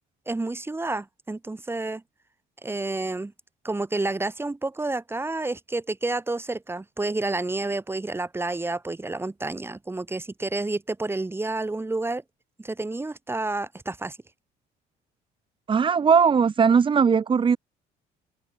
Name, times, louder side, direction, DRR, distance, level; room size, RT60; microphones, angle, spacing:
voice 1, 0.3-2.0 2.6-3.3 3.6-12.2 12.6-14.2, right 2 dB, 15° right, 4.9 m, -29 dB
voice 2, 15.7-17.6, right 6 dB, 30° right, 1.3 m, -19 dB
cardioid pair, 110°, 17 cm